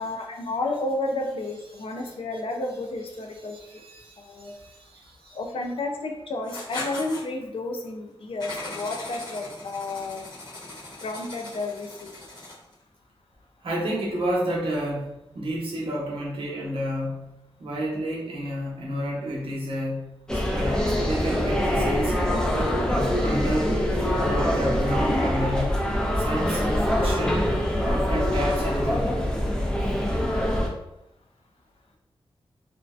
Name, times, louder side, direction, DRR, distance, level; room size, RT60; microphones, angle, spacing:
voice 1, 0.0-3.6 4.2-4.5 5.3-10.3 11.0-12.1, left 2 dB, 70° left, 3 dB, 0.4 m, -31 dB
voice 2, 3.5-5.4 13.6-17.3 17.6-22.2 22.8-23.8 24.2-25.8 26.2-27.5 27.9-29.2, equal, 65° right, -4 dB, 0.8 m, -30 dB
Writing, 6.4-7.2 8.4-12.7, left 2 dB, 45° left, 0.9 m, -39 dB
sound 1, 20.3-30.7, equal, 5° left, 0.4 m, -24 dB
2.5 x 2.1 x 2.3 m, 0.86 s
wide cardioid pair, 125°, 10 cm